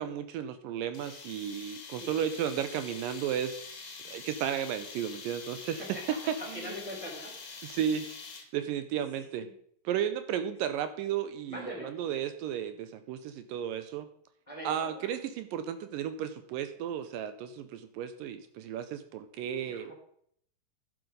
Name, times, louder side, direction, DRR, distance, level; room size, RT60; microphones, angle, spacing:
voice 1, 0.0-5.8 6.3-6.4 7.6-8.2 8.5-9.5 9.9-14.1 14.7-19.9, right 9 dB, 80° right, 10 dB, 2.3 m, -34 dB
sound 1, 0.9-8.7, left 5 dB, 50° left, 2.1 m, -45 dB
voice 2, 5.8-7.6 9.2-9.5 11.5-12.0 14.5-15.1 19.6-19.9, left 1 dB, 10° left, -2 dB, 3.0 m, -43 dB
11.5 x 7.8 x 5.2 m, 0.65 s
omnidirectional pair, 4.0 m